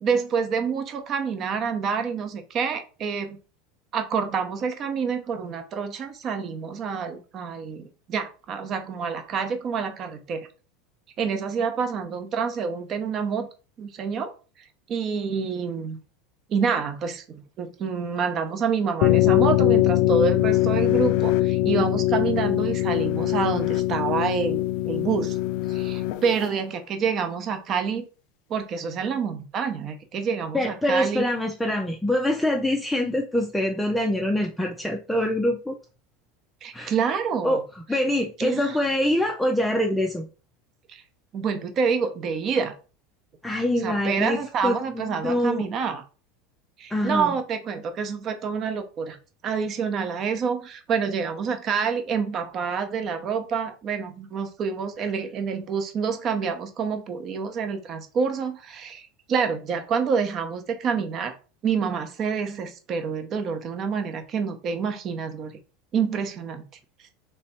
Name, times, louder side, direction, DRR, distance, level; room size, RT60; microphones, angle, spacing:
voice 1, 0.0-3.4 3.9-7.8 8.1-10.5 11.2-13.5 13.8-14.3 14.9-16.0 16.5-25.4 25.7-28.0 28.5-31.3 36.6-37.6 38.4-38.8 40.9-41.0 41.3-42.7 43.8-46.0 46.8-49.2 49.4-61.3 61.6-65.5 65.9-66.6, right 6 dB, 35° right, 7 dB, 0.8 m, -27 dB
sound 1, 19.0-26.5, left 15 dB, 60° left, 0.4 m, -22 dB
voice 2, 30.5-35.8 36.7-36.9 37.4-40.3 43.4-45.7 46.9-47.4, left 1 dB, 5° left, 1 dB, 0.5 m, -25 dB
3.3 x 3.3 x 4.2 m, 0.35 s
supercardioid pair, 140°, 0 cm